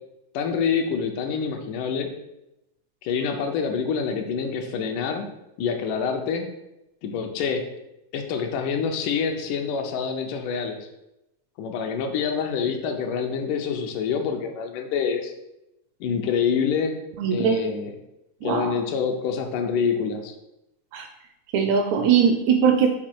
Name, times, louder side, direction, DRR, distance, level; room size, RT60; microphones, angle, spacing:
voice 1, 0.3-2.1 3.0-5.3 5.6-6.5 7.0-7.6 8.1-10.9 11.6-15.3 16.0-17.0 17.3-17.9 18.4-20.3, left 6 dB, 85° left, 4 dB, 2.3 m, -26 dB
voice 2, 17.2-17.6 18.4-18.7 20.9-21.1 21.5-22.9, right 7 dB, 80° right, 5 dB, 1.7 m, -20 dB
6.2 x 4.0 x 4.5 m, 0.90 s
omnidirectional pair, 3.7 m